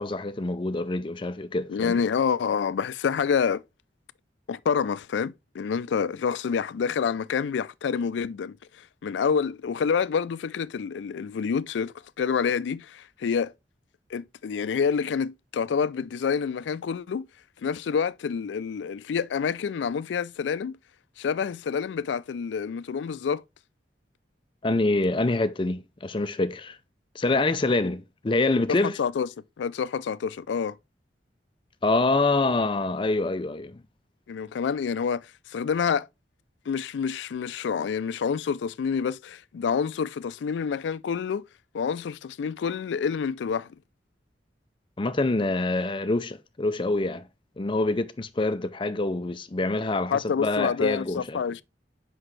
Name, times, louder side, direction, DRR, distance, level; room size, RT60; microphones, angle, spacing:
voice 1, 0.0-2.0 24.6-26.8 27.2-29.0 31.8-33.8 45.0-47.2 47.6-51.4, left 2 dB, 30° left, 0.5 m, -26 dB
voice 2, 1.7-3.6 4.5-8.6 9.0-13.5 14.1-17.3 17.6-20.8 21.2-23.4 28.8-29.3 29.6-30.8 34.3-36.1 36.7-41.4 41.7-43.7 50.1-51.6, left 6 dB, 90° left, 0.3 m, -27 dB
6.0 x 5.4 x 3.2 m
head